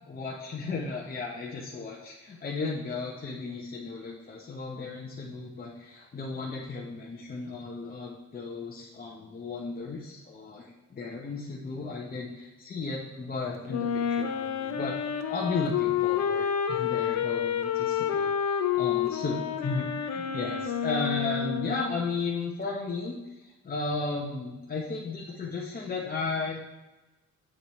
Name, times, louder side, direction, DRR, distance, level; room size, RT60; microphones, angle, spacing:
voice 1, 0.1-26.6, left 3 dB, 30° left, -3 dB, 0.8 m, -35 dB
Wind instrument woodwind instrument, 13.7-22.1, left 8 dB, 65° left, 0.7 m, -29 dB
7.4 x 4.2 x 3.1 m, 1.1 s
cardioid pair, 90°, 30 cm